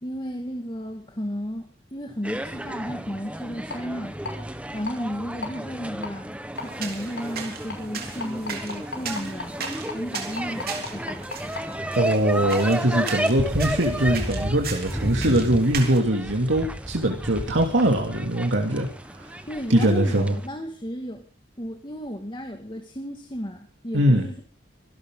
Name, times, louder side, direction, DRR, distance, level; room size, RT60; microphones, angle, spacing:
voice 1, 0.0-4.2 4.7-11.3 19.5-21.2 21.6-24.4, equal, 25° left, 3 dB, 2.1 m, -33 dB
sound 1, 2.2-20.5, right 1 dB, 5° right, 1.2 m, -32 dB
sound 2, 3.7-3.8 4.2-4.3 4.9-5.0 5.4-5.5 6.0-6.1 6.6-6.7 7.2-7.3 7.7-7.8 8.2-11.6 12.0-12.1 12.5-12.6, left 3 dB, 70° left, 6.1 m, -33 dB
sound 3, 6.5-16.0, right 6 dB, 55° right, 3.4 m, -38 dB
voice 2, 12.0-18.9 19.2-19.3 19.7-20.4 23.9-24.3, right 1 dB, 85° right, 1 dB, 2.8 m, -22 dB
25.5 x 12.5 x 3.9 m, 0.40 s
head